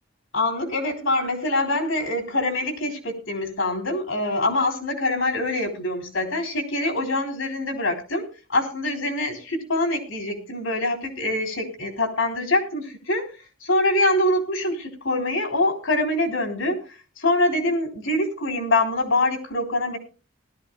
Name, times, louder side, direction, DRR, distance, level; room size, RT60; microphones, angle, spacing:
voice 1, 0.3-13.3 13.6-16.8 17.2-20.0, left 2 dB, 75° left, 4 dB, 3.7 m, -24 dB
20.0 x 13.0 x 2.3 m, 0.33 s
head